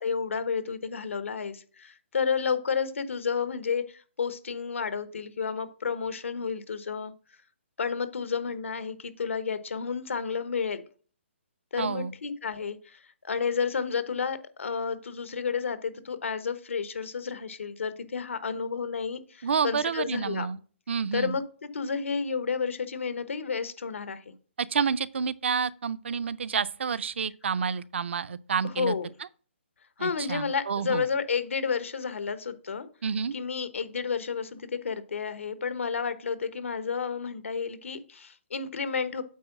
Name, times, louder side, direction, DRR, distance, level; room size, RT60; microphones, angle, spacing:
voice 1, 0.0-7.1 7.8-10.8 11.7-20.5 21.1-21.4 21.7-24.2 28.6-29.1 30.0-32.9 33.3-39.2, left 6 dB, 85° left, 1.2 m, -31 dB
voice 2, 11.8-12.1 19.4-20.6 20.9-21.3 24.6-29.0 30.0-31.0 33.0-33.3, right 6 dB, 65° right, 0.5 m, -29 dB
8.4 x 3.9 x 5.9 m
hypercardioid pair, 170°, 7 cm